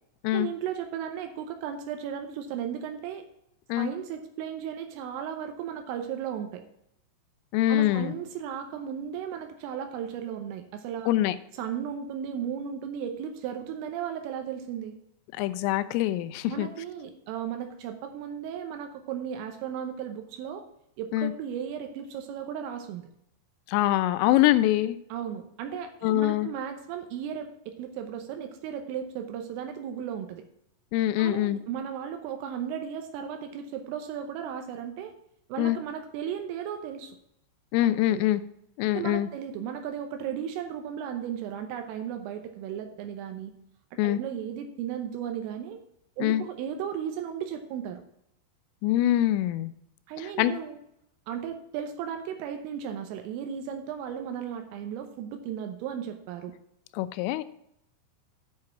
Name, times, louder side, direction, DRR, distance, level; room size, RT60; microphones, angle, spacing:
voice 1, 0.3-3.3 3.8-6.6 7.7-11.1 11.5-15.0 16.5-20.7 21.0-23.1 25.1-30.4 31.2-35.1 35.5-37.2 37.8-38.2 38.9-43.5 44.0-45.8 46.2-48.0 50.1-50.8 51.3-56.5, right 8 dB, 80° right, 6 dB, 3.4 m, -35 dB
voice 2, 7.5-8.1 11.1-11.4 15.4-16.7 21.1-21.3 23.7-25.0 26.0-26.5 30.9-31.6 35.6-35.8 37.7-38.4 38.8-39.3 44.0-44.2 46.2-46.4 48.8-49.7 50.2-50.5 57.0-57.4, left 14 dB, 85° left, 13 dB, 3.1 m, -24 dB
8.7 x 5.6 x 7.3 m, 0.75 s
omnidirectional pair, 5.9 m